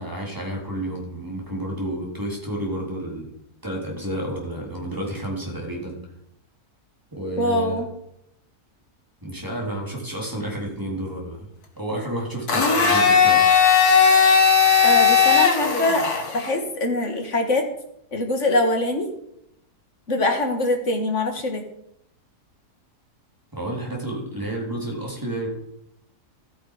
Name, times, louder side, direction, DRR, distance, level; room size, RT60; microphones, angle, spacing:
voice 1, 0.0-3.3 3.6-6.0 7.1-7.8 9.2-11.5 11.8-13.4 23.5-25.5, right 1 dB, 10° right, -2 dB, 3.7 m, -30 dB
voice 2, 7.4-7.9 14.8-16.1 16.3-17.7 18.1-19.1 20.1-21.6, left 2 dB, 50° left, 4 dB, 2.2 m, -23 dB
Domestic sounds home sounds, 12.5-16.5, left 6 dB, 70° left, 2.2 m, -17 dB
13.5 x 9.4 x 5.0 m, 0.79 s
omnidirectional pair, 1.7 m